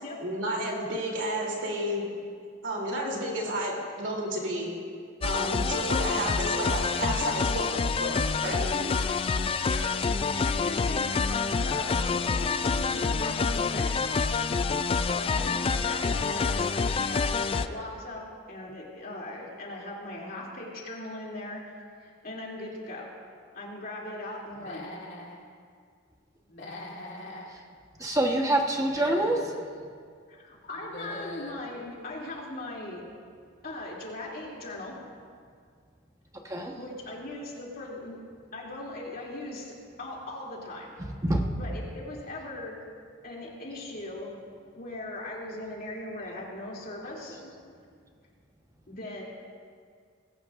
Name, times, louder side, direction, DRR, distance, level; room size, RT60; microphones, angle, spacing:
voice 1, 0.2-2.0 2.6-4.7 5.2-8.7, right 1 dB, 65° right, -2 dB, 3.2 m, -31 dB
sound 1, 5.2-17.7, left 4 dB, 30° left, 0.3 m, -27 dB
voice 2, 10.3-13.9 15.0-23.1 23.5-24.9 30.3-33.0 33.6-34.9 36.7-38.2 38.5-41.0 41.6-42.8 43.2-44.3 44.8-47.6 47.8-47.9 48.9-49.2, left 2 dB, 50° left, -3 dB, 2.9 m, -39 dB
Human voice / Animal, 24.5-25.4 26.5-27.5 28.7-29.6 30.7-31.6, left 1 dB, 65° left, 2.3 m, -41 dB
voice 3, 28.0-29.5 36.4-36.8 41.2-41.6, right 1 dB, 15° right, 1 dB, 1.2 m, -26 dB
20.0 x 17.0 x 2.6 m, 2.1 s
head